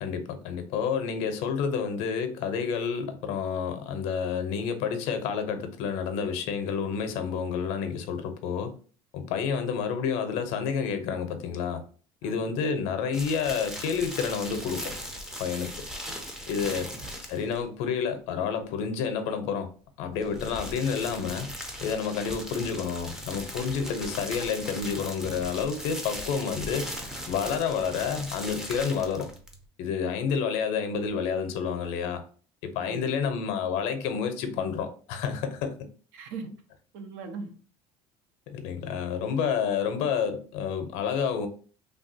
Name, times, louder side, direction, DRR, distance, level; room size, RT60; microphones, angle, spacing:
voice 1, 0.0-8.7 9.1-11.8 12.2-14.9 15.4-15.7 16.5-16.9 17.3-19.7 20.0-21.5 21.8-26.9 27.3-29.3 29.8-32.2 32.6-35.8 38.5-41.5, left 6 dB, 70° left, 0.6 m, -29 dB
voice 2, 12.2-12.5 16.2-16.3 30.2-30.3 32.8-33.1 36.1-36.5 36.9-37.5 38.8-38.9, right 4 dB, 85° right, 0.7 m, -40 dB
sound 1, 13.1-17.6 20.1-29.6, equal, 5° right, 0.4 m, -39 dB
3.3 x 2.3 x 2.6 m
cardioid pair, 160°, 12 cm